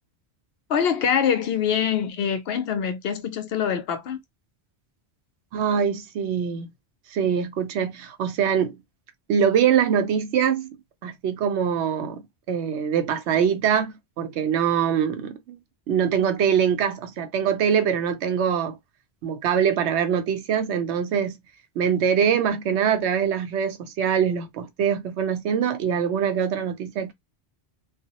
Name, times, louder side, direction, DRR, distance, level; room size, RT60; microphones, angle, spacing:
voice 1, 0.7-4.2, left 7 dB, 70° left, 0.8 m, -24 dB
voice 2, 5.5-6.7 7.1-8.8 9.3-10.8 11.0-12.2 12.5-15.6 15.9-18.8 19.2-21.4 21.8-27.1, right 8 dB, 85° right, 0.9 m, -23 dB
2.3 x 2.0 x 2.8 m
omnidirectional pair, 1.1 m